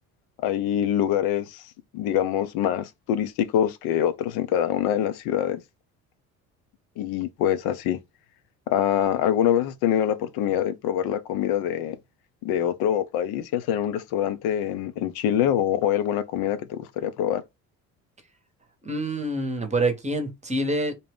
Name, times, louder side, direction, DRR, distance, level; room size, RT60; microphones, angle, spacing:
voice 1, 0.4-1.6 1.9-5.6 7.0-8.0 8.7-12.0 12.4-17.4, left 10 dB, 65° left, 0.6 m, -25 dB
voice 2, 18.8-20.9, right 2 dB, 15° right, 0.8 m, -26 dB
2.7 x 2.1 x 3.4 m
hypercardioid pair, 60°, 41 cm